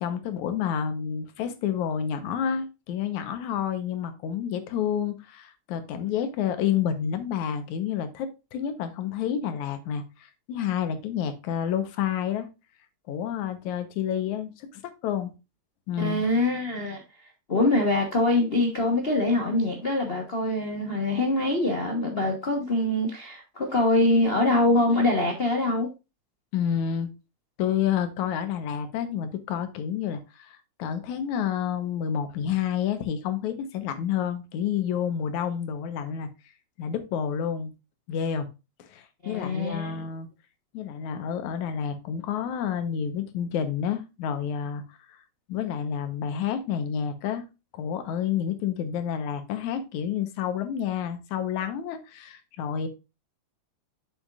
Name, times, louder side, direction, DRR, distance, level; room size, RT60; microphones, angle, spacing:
voice 1, 0.0-12.5 13.1-15.3 15.9-16.3 26.5-27.1 27.6-36.3 36.8-37.7 38.1-38.5 38.9-40.3 40.7-44.8 45.5-47.4 47.7-52.9, left 8 dB, 90° left, 2.4 m, -29 dB
voice 2, 16.0-17.0 17.5-25.9 39.2-40.0, left 2 dB, 60° left, 0.6 m, -24 dB
7.4 x 7.1 x 2.5 m
omnidirectional pair, 3.3 m